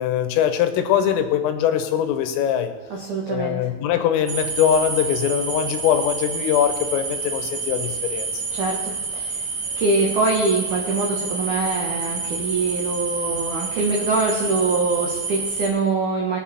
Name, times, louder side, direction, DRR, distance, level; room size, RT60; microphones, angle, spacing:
voice 1, 0.0-2.7 3.3-8.4, left 9 dB, 85° left, 8 dB, 3.6 m, -22 dB
voice 2, 2.9-3.6 8.5-9.4 9.8-16.4, right 3 dB, 90° right, -1 dB, 1.7 m, -23 dB
sound 1, 4.3-15.7, right 4 dB, 60° right, 1.9 m, -28 dB
21.0 x 8.1 x 4.3 m, 1.2 s
omnidirectional pair, 5.8 m